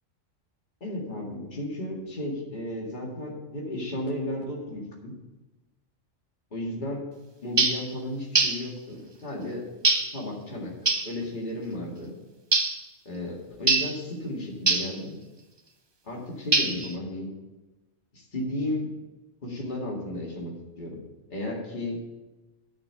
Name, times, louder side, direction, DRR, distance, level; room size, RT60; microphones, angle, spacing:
voice 1, 0.8-5.1 6.5-7.0 7.4-9.7 10.1-10.7 11.0-12.1 13.1-15.2 16.0-17.3 18.1-18.9 19.4-21.0 21.3-22.0, left 1 dB, 35° left, -3 dB, 2.2 m, -34 dB
sound 1, 7.6-7.9 8.3-8.7 9.8-10.2 10.9-11.1 12.5-12.8 13.7-14.0 14.7-15.0 16.5-16.9, right 3 dB, 25° right, 0.6 m, -23 dB
10.5 x 5.7 x 6.9 m, 1.1 s
omnidirectional pair, 1.4 m